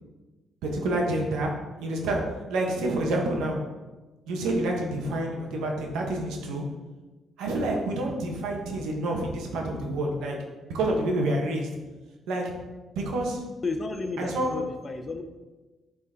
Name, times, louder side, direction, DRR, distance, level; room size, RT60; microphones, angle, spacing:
voice 1, 0.6-1.5 1.8-2.2 2.5-3.6 4.3-6.6 7.4-10.3 10.6-11.7 12.3-12.5 12.9-13.4 14.2-14.5, right 1 dB, 90° right, 0 dB, 1.4 m, -28 dB
voice 2, 13.6-15.2, left 3 dB, 35° left, 7 dB, 0.9 m, -32 dB
9.3 x 4.3 x 3.8 m, 1.2 s
cardioid pair, 90°, 0 cm